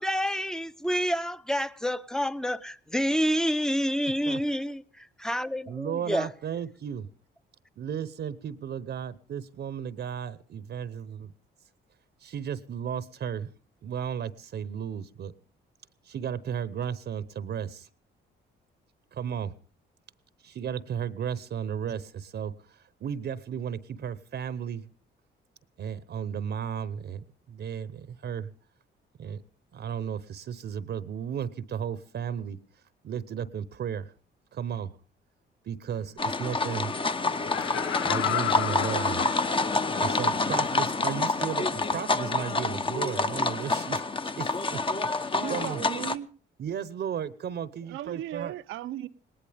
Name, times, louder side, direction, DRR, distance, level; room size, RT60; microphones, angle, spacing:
voice 1, 0.0-6.3, equal, 5° left, 0.7 m, -28 dB
voice 2, 5.7-7.1 7.8-11.3 12.2-13.5 13.8-15.3 16.0-17.9 19.1-19.5 20.4-24.8 25.8-28.5 29.2-29.4 29.7-32.6 33.0-34.1 34.5-34.9 35.6-36.9 38.0-39.3 40.0-44.0 44.4-45.8 46.6-48.5, right 8 dB, 60° right, 0.9 m, -34 dB
sound 1, 36.2-46.2, left 3 dB, 25° left, 1.0 m, -28 dB
Laughter, 37.3-40.0 40.5-40.6, left 13 dB, 90° left, 0.7 m, -33 dB
voice 3, 45.3-46.3 47.9-49.1, right 12 dB, 90° right, 0.9 m, -36 dB
19.5 x 19.0 x 3.5 m
cardioid pair, 90°, 20 cm